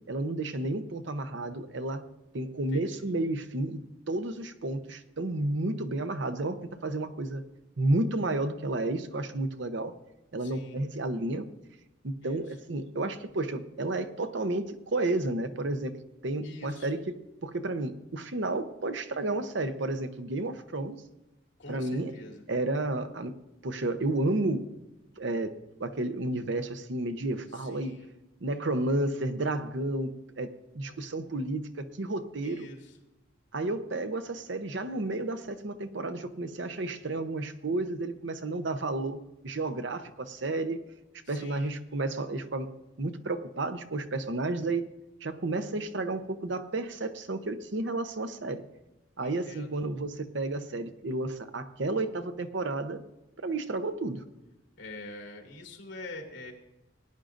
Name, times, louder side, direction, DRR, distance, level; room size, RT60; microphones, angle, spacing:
voice 1, 0.1-2.0 2.3-7.4 7.8-9.9 10.3-11.5 12.0-15.9 16.2-17.1 17.4-21.0 21.7-22.1 22.5-24.7 25.2-27.9 28.4-32.7 33.5-39.2 39.4-40.8 41.3-42.7 43.0-44.9 45.2-48.6 49.2-53.0 53.4-54.2, right 2 dB, 70° right, 9 dB, 0.8 m, -31 dB
voice 2, 2.7-3.0 10.4-10.8 12.2-12.4 16.4-16.9 21.6-22.4 27.5-28.1 30.9-31.0 32.4-32.9 41.2-41.7 49.2-49.7 54.8-56.5, left 2 dB, 70° left, 1 dB, 2.4 m, -45 dB
19.0 x 10.0 x 2.6 m, 0.98 s
head